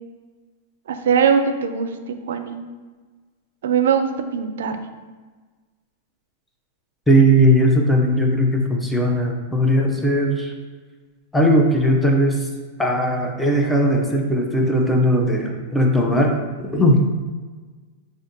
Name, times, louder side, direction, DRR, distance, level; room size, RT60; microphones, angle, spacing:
voice 1, 0.9-2.6 3.6-4.8, right 7 dB, 80° right, 8 dB, 0.3 m, -21 dB
voice 2, 7.1-10.5 11.3-12.5 12.8-16.4 16.7-17.0, equal, 5° left, 0 dB, 0.5 m, -18 dB
4.9 x 2.5 x 2.6 m, 1.4 s
hypercardioid pair, 140°, 0 cm